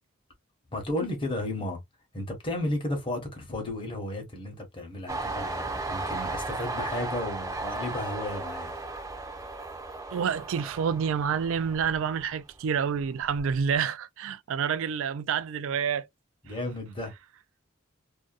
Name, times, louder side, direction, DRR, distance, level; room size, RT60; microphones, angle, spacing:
voice 1, 0.7-1.8 2.1-8.7 16.4-17.1, left 1 dB, 25° left, 1.0 m, -33 dB
Train, 5.1-12.5 12.9-13.7, right 3 dB, 15° right, 0.6 m, -35 dB
voice 2, 10.1-16.1, right 7 dB, 65° right, 0.3 m, -28 dB
2.6 x 2.2 x 2.4 m
head